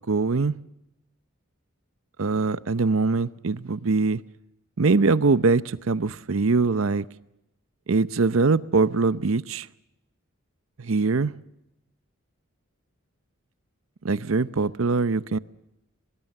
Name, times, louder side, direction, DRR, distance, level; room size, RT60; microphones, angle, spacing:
voice 1, 0.1-0.5 2.2-4.2 4.8-7.1 7.9-9.7 10.8-11.3 14.0-15.4, right 3 dB, 70° right, 0.7 m, -22 dB
24.0 x 20.0 x 6.6 m
head